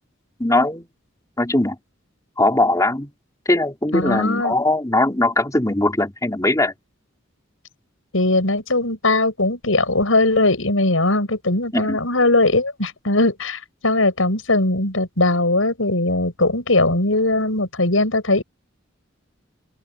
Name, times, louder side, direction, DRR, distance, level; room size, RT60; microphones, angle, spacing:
voice 1, 0.4-0.9 1.4-1.8 2.4-3.1 3.4-6.7 11.7-12.0, left 2 dB, 15° left, 3.3 m, -20 dB
voice 2, 3.9-4.5 8.1-18.4, left 2 dB, 85° left, 6.1 m, -19 dB
open air
head